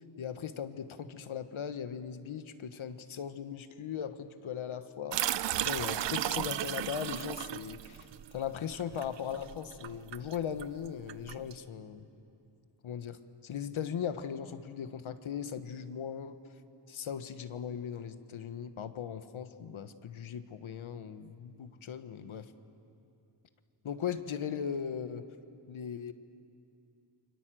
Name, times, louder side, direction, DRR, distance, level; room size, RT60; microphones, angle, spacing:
voice 1, 0.2-8.1 8.3-12.0 12.8-13.2 13.4-16.4 16.9-22.5 23.8-25.2 25.7-26.1, left 8 dB, 75° left, 10 dB, 1.3 m, -38 dB
sound 1, 5.1-11.5, right 12 dB, 60° right, 0.6 m, -35 dB
29.5 x 24.0 x 7.7 m, 2.6 s
wide cardioid pair, 105°, 49 cm